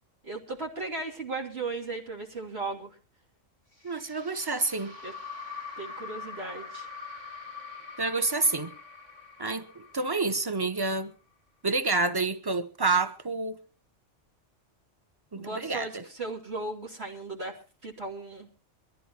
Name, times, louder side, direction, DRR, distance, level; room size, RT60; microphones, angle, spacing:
voice 1, 0.2-3.0 5.0-5.1 5.8-6.9 15.4-18.5, right 3 dB, 55° right, 3.1 m, -36 dB
sound 1, 3.7-11.0, left 5 dB, 80° right, 8.1 m, -44 dB
voice 2, 3.8-4.9 8.0-8.7 9.4-11.1 11.6-13.6 15.3-16.0, right 3 dB, 20° right, 1.2 m, -28 dB
23.5 x 14.0 x 3.0 m
omnidirectional pair, 1.2 m